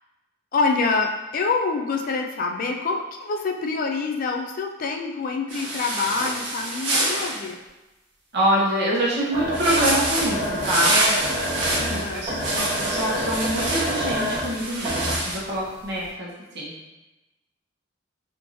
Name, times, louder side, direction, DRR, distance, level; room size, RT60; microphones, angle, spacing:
voice 1, 0.5-7.6 11.7-12.3, left 4 dB, 45° left, 3 dB, 0.3 m, -26 dB
sound 1, 5.5-7.4 9.5-15.4, right 1 dB, 90° right, 1.3 m, -26 dB
voice 2, 8.3-10.9 11.9-16.8, right 1 dB, 60° right, -6 dB, 1.1 m, -25 dB
sound 2, 9.3-15.6 16.0-16.1, equal, 20° right, 1.5 m, -28 dB
3.5 x 3.0 x 2.6 m, 1.0 s
head